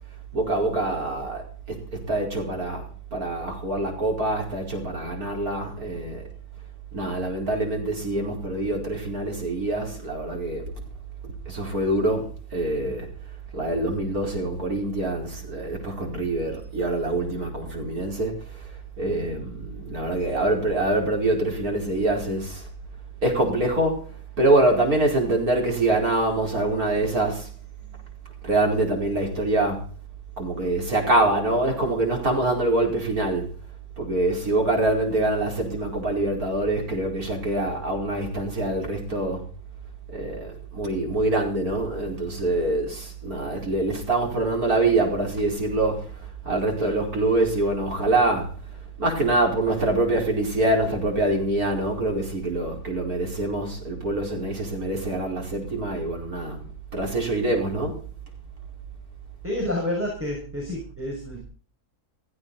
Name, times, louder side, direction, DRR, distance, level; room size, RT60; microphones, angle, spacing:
voice 1, 0.3-1.4 1.7-2.8 3.1-6.2 6.9-10.7 11.5-12.2 12.5-13.1 13.5-18.4 19.0-22.7 23.2-24.1 24.4-27.5 28.4-29.8 30.4-33.5 34.0-39.4 40.1-46.1 46.4-48.6 49.0-56.6 56.9-58.0, right 2 dB, 70° right, 5.4 m, -25 dB
voice 2, 59.4-61.4, left 1 dB, 10° right, 6.2 m, -29 dB
16.5 x 15.5 x 4.1 m
omnidirectional pair, 1.6 m